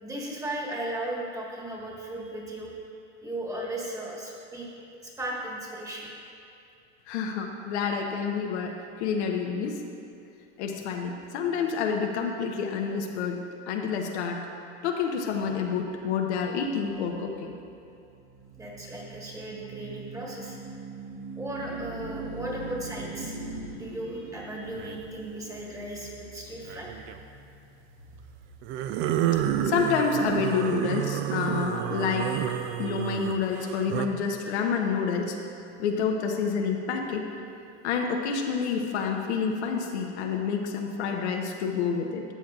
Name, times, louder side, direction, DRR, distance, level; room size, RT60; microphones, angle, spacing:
voice 1, 0.0-2.9 3.2-6.1 18.6-20.6 21.3-23.4 23.8-26.9 31.9-32.2 32.5-33.0, right 1 dB, 10° right, -3 dB, 1.5 m, -36 dB
voice 2, 7.1-9.8 10.6-14.5 14.8-17.6 29.6-32.4 32.8-35.4 35.8-37.3 37.8-42.2, left 6 dB, 75° left, 2 dB, 1.0 m, -28 dB
sound 1, 15.2-29.4, right 3 dB, 60° right, 1.3 m, -43 dB
sound 2, 24.7-25.1 26.6-27.2 28.6-34.1, right 11 dB, 40° right, 0.4 m, -29 dB
12.5 x 7.2 x 2.4 m, 2.6 s
supercardioid pair, 115°, 34 cm